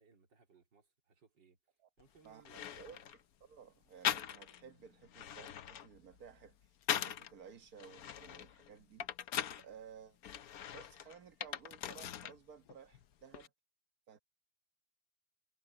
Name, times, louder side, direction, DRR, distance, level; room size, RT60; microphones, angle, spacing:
voice 1, 0.0-3.1, right 4 dB, 70° right, 3.8 m, -66 dB
sound 1, 2.0-2.1 2.4-3.2 4.0-4.7 5.0-7.3 7.8-9.7 10.2-12.4 12.7-13.5, left 10 dB, 60° left, 1.1 m, -40 dB
voice 2, 2.2-3.0 3.4-9.1 9.5-10.2 10.7-13.5 14.1-14.2, right 7 dB, 55° right, 1.7 m, -56 dB
omnidirectional pair, 2.0 m